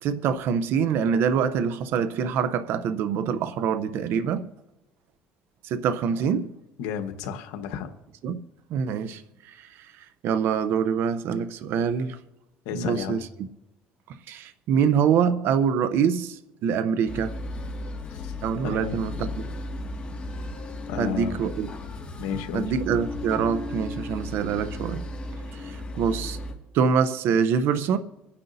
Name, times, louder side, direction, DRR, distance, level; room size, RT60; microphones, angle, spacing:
voice 1, 0.0-4.5 5.6-6.5 8.2-8.4 8.7-12.2 12.7-13.5 14.1-17.4 18.4-19.4 21.0-21.7 22.3-25.0 25.5-26.4 26.7-28.0, right 7 dB, 65° right, 0.7 m, -25 dB
voice 2, 6.8-7.9 12.6-13.2 18.1-18.3 18.6-19.0 20.9-21.4 22.2-22.7, left 8 dB, 90° left, 1.2 m, -32 dB
sound 1, 17.1-26.5, left 2 dB, 25° left, 2.0 m, -35 dB
25.5 x 9.8 x 2.7 m
cardioid pair, 105°, 4 cm